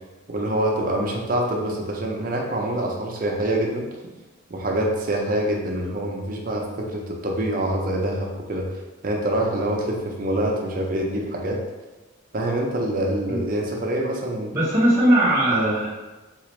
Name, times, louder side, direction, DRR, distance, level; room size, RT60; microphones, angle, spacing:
voice 1, 0.3-3.9 4.5-8.7 9.0-11.6 12.3-14.5 15.5-15.8, right 1 dB, 40° right, 0 dB, 0.5 m, -25 dB
voice 2, 14.5-15.9, right 1 dB, 10° right, -9 dB, 1.2 m, -19 dB
3.8 x 2.5 x 3.1 m, 1.2 s
head